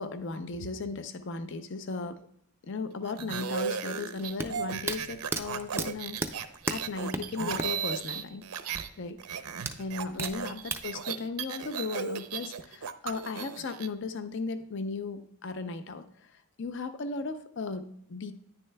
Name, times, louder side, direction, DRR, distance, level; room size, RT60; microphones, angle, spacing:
voice 1, 0.0-2.2 2.6-6.2 6.7-8.4 9.0-9.2 9.8-18.3, left 3 dB, 55° left, 10 dB, 0.5 m, -36 dB
sound 1, 3.0-8.9 9.2-13.9, right 7 dB, 85° right, 0.6 m, -36 dB
sound 2, 4.4-7.9 8.2-8.3 9.7-10.9, right 3 dB, 10° right, 0.3 m, -33 dB
9.8 x 9.7 x 2.2 m, 0.68 s
head